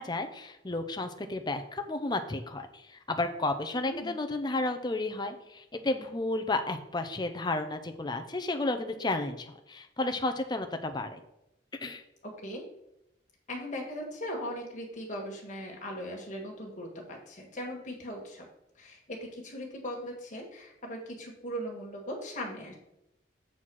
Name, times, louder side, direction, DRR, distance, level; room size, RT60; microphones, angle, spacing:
voice 1, 0.0-11.2 11.8-12.0, left 2 dB, 20° left, 6 dB, 0.6 m, -32 dB
voice 2, 3.8-4.2 12.2-12.6 13.5-18.4 18.8-22.7, equal, 40° left, 0 dB, 1.7 m, -39 dB
7.5 x 4.2 x 6.2 m, 0.87 s
head